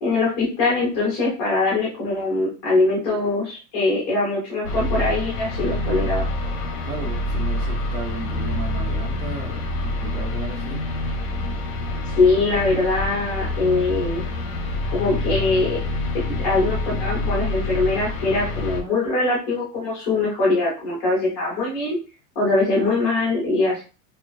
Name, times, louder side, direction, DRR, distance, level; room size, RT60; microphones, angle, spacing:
voice 1, 0.0-6.3 12.2-14.2 14.9-15.8 16.4-22.0 22.4-23.8, left 3 dB, 10° left, -5 dB, 0.3 m, -22 dB
sound 1, 4.6-18.8, left 2 dB, 85° left, 1.1 m, -27 dB
voice 2, 6.8-10.8, right 4 dB, 90° right, 2 dB, 1.1 m, -35 dB
4.8 x 2.5 x 2.4 m, 0.33 s
supercardioid pair, 175°, 43 cm